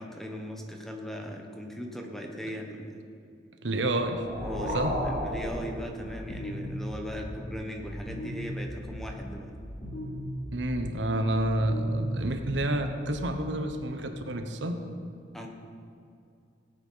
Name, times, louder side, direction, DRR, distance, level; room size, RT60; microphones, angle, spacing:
voice 1, 0.0-3.0 4.4-9.5 15.3-15.5, equal, ahead, 1 dB, 1.3 m, -38 dB
voice 2, 3.6-4.2 4.7-4.9 10.5-14.8, right 1 dB, 70° right, 6 dB, 1.1 m, -29 dB
sound 1, 3.9-6.5, equal, 35° right, 2.2 m, -34 dB
sound 2, 4.3-13.4, equal, 40° left, 3.8 m, -39 dB
17.0 x 9.1 x 5.7 m, 2.5 s
head